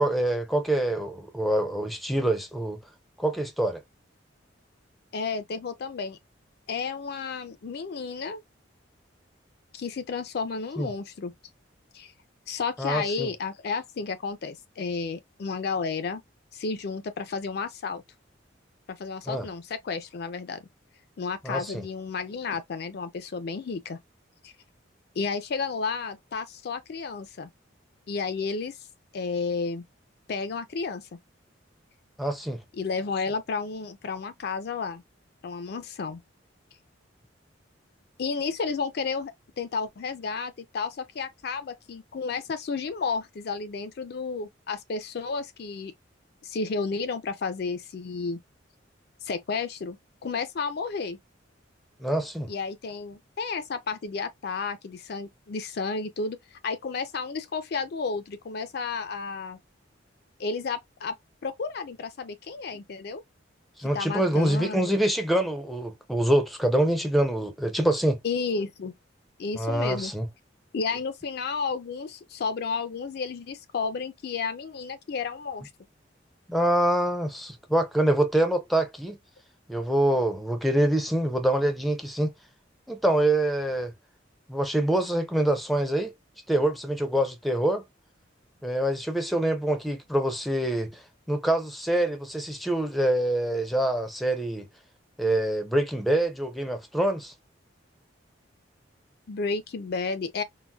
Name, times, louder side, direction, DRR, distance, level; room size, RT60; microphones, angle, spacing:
voice 1, 0.0-2.8 3.2-3.8 10.8-10.9 12.8-13.3 19.3-19.5 21.4-21.8 32.2-32.6 52.0-52.5 63.8-68.2 69.6-70.3 76.5-79.2 79.7-82.3 82.9-83.9 84.5-86.1 86.5-87.8 88.6-91.0 91.3-94.7 95.2-97.3, right 1 dB, ahead, 0.5 m, -25 dB
voice 2, 5.1-6.2 6.7-8.4 9.7-11.3 11.9-12.1 12.5-16.2 16.5-18.0 18.9-20.6 21.2-24.0 24.4-24.5 25.2-27.5 28.1-28.8 29.1-29.8 30.3-31.1 32.7-35.0 35.4-36.2 38.2-45.9 46.4-48.4 49.2-51.2 52.5-59.6 60.4-61.2 61.4-63.2 63.8-64.9 68.2-69.0 69.4-70.1 70.7-75.7 99.3-100.4, left 4 dB, 55° left, 0.4 m, -32 dB
3.9 x 2.0 x 2.3 m
head